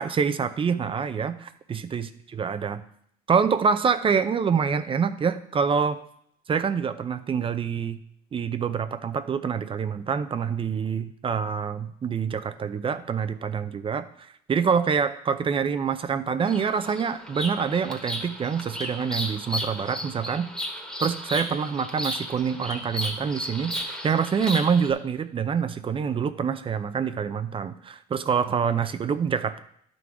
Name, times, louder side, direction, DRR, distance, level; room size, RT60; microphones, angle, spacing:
voice 1, 0.0-2.8 3.3-6.0 6.5-8.0 8.3-20.5 21.0-29.6, right 6 dB, 30° right, 10 dB, 0.5 m, -26 dB
Bird vocalization bird call bird song, 16.4-24.9, equal, 5° left, 1.3 m, -34 dB
11.5 x 3.9 x 4.7 m, 0.69 s
cardioid pair, 110°, 17 cm